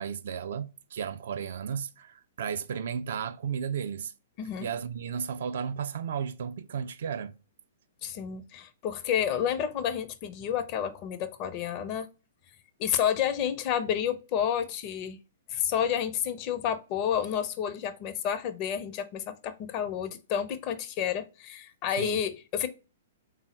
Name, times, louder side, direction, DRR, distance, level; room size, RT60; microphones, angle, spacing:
voice 1, 0.0-4.1 4.6-7.4 22.0-22.2, right 7 dB, 60° right, 0.3 m, -34 dB
voice 2, 4.4-4.7 8.0-12.1 12.8-15.2 15.5-22.7, left 9 dB, 35° left, 0.5 m, -30 dB
3.6 x 2.0 x 4.1 m
figure-of-eight pair, 110°, 0 cm